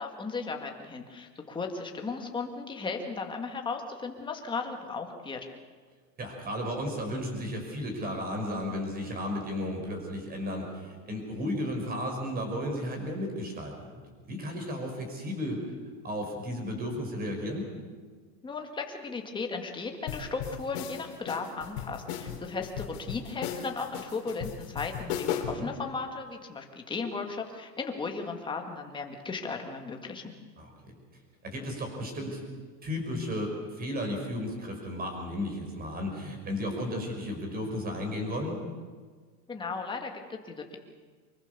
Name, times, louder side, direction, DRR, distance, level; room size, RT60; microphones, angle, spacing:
voice 1, 0.0-5.4 18.4-30.3 39.5-40.8, left 4 dB, 10° left, 3 dB, 2.0 m, -36 dB
voice 2, 6.2-15.6 16.0-17.7 25.5-25.7 30.6-30.9 31.4-32.4 32.8-38.6, left 1 dB, 20° right, 3 dB, 5.7 m, -34 dB
sound 1, 20.1-25.7, left 9 dB, 50° left, 3.3 m, -36 dB
25.0 x 22.5 x 6.9 m, 1.5 s
supercardioid pair, 155°, 49 cm